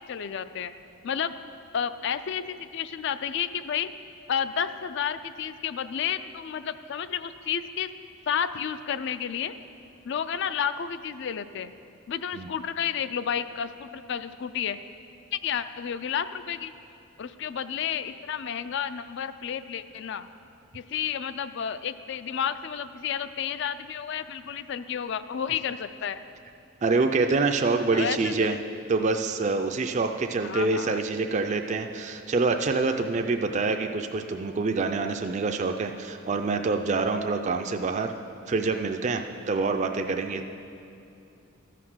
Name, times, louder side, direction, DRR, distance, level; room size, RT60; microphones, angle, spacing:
voice 1, 0.1-0.7 1.0-1.3 1.7-3.9 4.3-7.9 8.3-9.5 10.0-11.7 12.1-14.8 15.3-16.7 17.2-20.3 20.7-26.2 27.9-28.6 30.4-31.0, left 8 dB, 55° left, 12 dB, 0.4 m, -31 dB
voice 2, 26.8-28.6 28.9-38.1 38.5-40.4, right 3 dB, 35° right, 5 dB, 0.3 m, -26 dB
13.0 x 5.9 x 6.2 m, 2.6 s
head